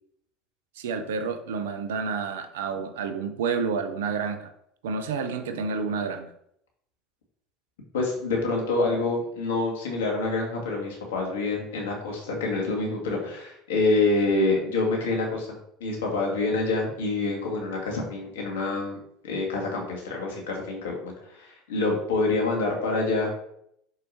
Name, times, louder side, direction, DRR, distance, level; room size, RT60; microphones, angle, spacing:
voice 1, 0.8-4.5 4.8-6.3, right 5 dB, 75° right, 8 dB, 0.7 m, -29 dB
voice 2, 7.9-15.5 15.8-19.0 19.2-23.3, left 3 dB, 75° left, -1 dB, 1.9 m, -26 dB
6.7 x 4.9 x 2.9 m, 0.74 s
hypercardioid pair, 70°, 0 cm